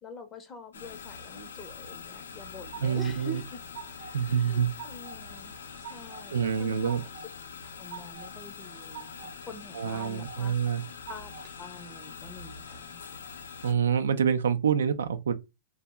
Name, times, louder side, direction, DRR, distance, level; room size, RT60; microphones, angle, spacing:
voice 1, 0.0-3.6 3.9-5.5 5.8-7.1 7.8-10.5 11.1-13.0, left 1 dB, 25° left, 0.5 m, -46 dB
sound 1, 0.7-13.7, left 5 dB, 90° left, 0.5 m, -44 dB
sound 2, 2.1-3.1 3.5-4.2 4.5-5.2 5.5-6.2 6.6-7.3 7.6-8.3 8.7-9.3 9.7-10.4 10.8-11.5, right 7 dB, 50° right, 0.8 m, -45 dB
voice 2, 2.8-3.4 4.1-4.7 6.3-7.0 9.7-10.8 13.6-15.3, right 7 dB, 85° right, 0.4 m, -26 dB
2.8 x 2.0 x 3.3 m
hypercardioid pair, 120°, 0 cm